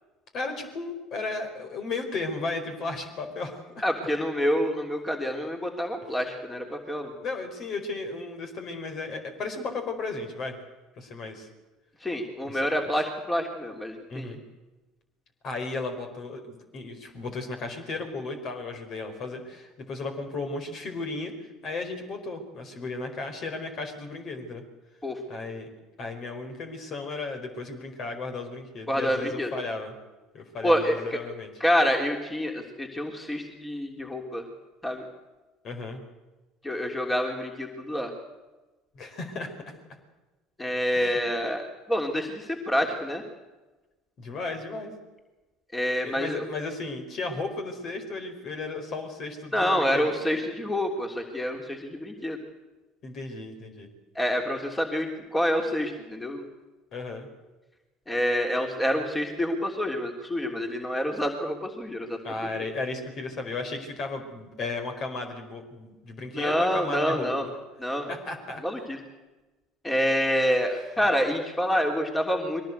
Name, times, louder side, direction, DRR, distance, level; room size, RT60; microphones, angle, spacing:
voice 1, 0.3-3.8 7.2-10.6 11.0-11.5 12.4-12.6 14.1-14.4 15.4-21.3 21.6-24.6 25.3-25.7 26.0-29.9 30.3-31.5 35.6-36.0 38.9-39.5 40.9-41.2 44.2-44.9 46.0-50.1 53.0-53.9 56.9-57.3 62.2-67.5 68.1-68.6, left 3 dB, 50° left, 5 dB, 4.7 m, -35 dB
voice 2, 3.8-7.1 12.0-14.3 25.0-25.2 28.9-29.5 30.6-30.9 31.6-34.4 34.8-35.1 36.6-38.1 40.6-43.2 45.7-46.4 49.5-52.4 54.1-56.4 58.1-62.2 66.3-67.5 67.8-68.1 68.6-69.0 69.8-72.6, equal, 15° left, 2 dB, 3.3 m, -27 dB
23.0 x 18.0 x 8.1 m, 1.1 s
hypercardioid pair, 70°, 0 cm